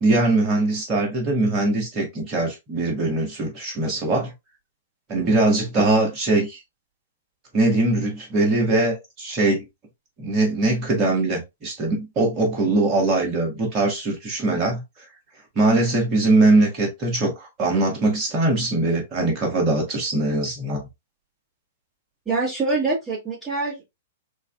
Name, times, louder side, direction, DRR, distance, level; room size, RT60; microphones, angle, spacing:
voice 1, 0.0-4.3 5.1-6.6 7.5-9.6 10.2-14.8 15.5-20.8, right 2 dB, 30° right, 1.4 m, -21 dB
voice 2, 22.2-23.8, right 3 dB, 10° right, 1.6 m, -24 dB
3.9 x 2.5 x 2.3 m
figure-of-eight pair, 105°, 0 cm